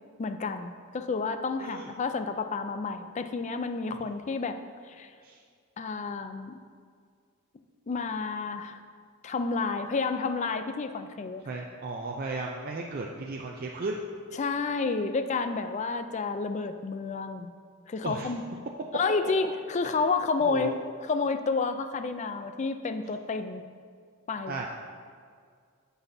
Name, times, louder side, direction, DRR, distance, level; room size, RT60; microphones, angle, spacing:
voice 1, 0.2-4.6 4.9-5.1 5.8-6.6 7.9-8.8 9.2-11.4 14.4-17.5 17.9-18.4 18.9-20.8 21.0-23.6 24.3-24.6, left 4 dB, 35° left, 9 dB, 0.3 m, -30 dB
voice 2, 1.6-1.9 5.2-5.4 11.4-14.0 18.0-18.3 20.5-20.7 24.5-24.7, right 3 dB, 45° right, -1 dB, 0.5 m, -35 dB
9.7 x 7.0 x 2.7 m, 2.1 s
head